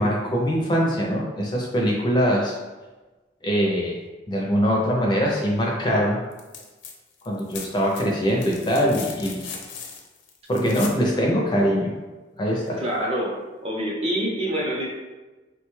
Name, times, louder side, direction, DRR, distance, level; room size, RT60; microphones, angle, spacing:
voice 1, 0.0-2.6 3.4-4.0 4.3-6.2 7.3-9.5 10.5-11.9 12.4-12.8, equal, 25° left, -2 dB, 0.4 m, -22 dB
sound 1, 6.3-6.9 7.2-11.0 12.7-12.8, left 5 dB, 85° left, 0.5 m, -38 dB
voice 2, 12.8-13.4 13.6-14.9, right 1 dB, 30° right, -3 dB, 0.6 m, -26 dB
3.3 x 2.2 x 3.0 m, 1.2 s
head